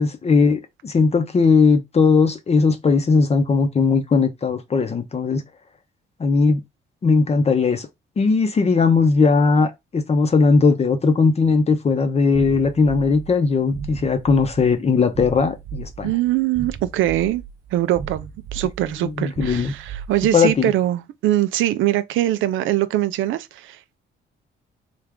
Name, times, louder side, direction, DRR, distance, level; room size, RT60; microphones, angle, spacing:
voice 1, 0.0-5.4 6.2-6.6 7.0-7.9 8.2-16.1 19.0-19.7 20.3-20.7, left 4 dB, 30° left, 0.6 m, -18 dB
sound 1, 12.3-20.6, right 7 dB, 45° right, 0.7 m, -36 dB
voice 2, 16.0-17.4 17.7-24.0, right 14 dB, 80° right, 0.4 m, -22 dB
3.3 x 2.4 x 3.5 m
cardioid pair, 90°, 20 cm